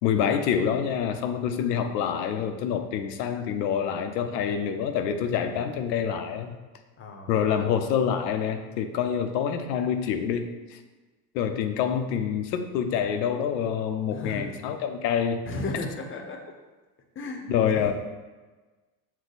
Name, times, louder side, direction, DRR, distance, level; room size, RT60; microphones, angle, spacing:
voice 1, 0.0-6.5 7.3-10.8 11.3-15.4 17.5-17.9, left 8 dB, 85° left, 7 dB, 0.6 m, -26 dB
voice 2, 7.0-7.3 14.1-14.5 15.5-16.4 17.1-17.9, left 2 dB, 25° left, 3 dB, 0.7 m, -34 dB
6.1 x 2.2 x 4.0 m, 1.3 s
supercardioid pair, 95°, 49 cm